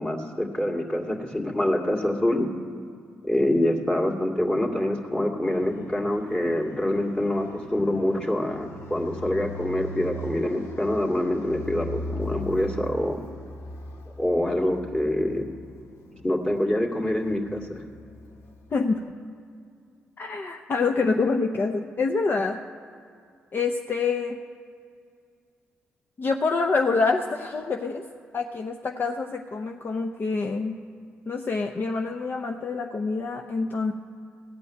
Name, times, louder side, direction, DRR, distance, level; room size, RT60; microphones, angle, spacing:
voice 1, 0.0-2.5 3.2-13.2 14.2-15.5 16.2-17.8, left 1 dB, 20° left, 0 dB, 2.2 m, -25 dB
Fixed-wing aircraft airplane, 5.5-19.0, left 1 dB, 80° left, 1.2 m, -40 dB
voice 2, 18.7-19.1 20.2-22.6 23.5-24.4 26.2-28.0 28.3-30.8 31.3-33.9, left 4 dB, 50° left, 4 dB, 0.7 m, -26 dB
15.5 x 5.3 x 9.6 m, 2.3 s
supercardioid pair, 60°, 5 cm